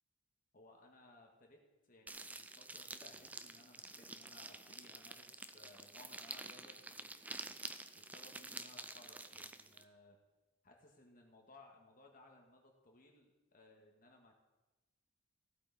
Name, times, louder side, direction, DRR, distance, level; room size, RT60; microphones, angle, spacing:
voice 1, 0.5-7.6 7.9-10.2 10.6-14.3, left 2 dB, 45° left, 1 dB, 1.8 m, -62 dB
sound 1, 2.1-9.8, right 2 dB, 10° right, 0.3 m, -49 dB
15.5 x 8.2 x 4.2 m, 1.1 s
head